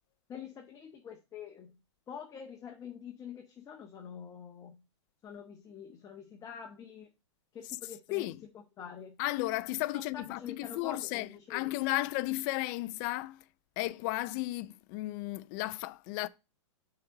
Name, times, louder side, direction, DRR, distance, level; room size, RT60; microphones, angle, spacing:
voice 1, 0.3-1.8 2.1-4.8 5.2-7.1 7.5-8.2 8.5-9.2 10.1-11.7, left 7 dB, 20° left, 1.0 m, -46 dB
voice 2, 8.1-8.4 9.2-13.4 13.8-16.3, left 18 dB, 40° left, 0.4 m, -34 dB
6.5 x 4.1 x 5.2 m
hypercardioid pair, 130°, 16 cm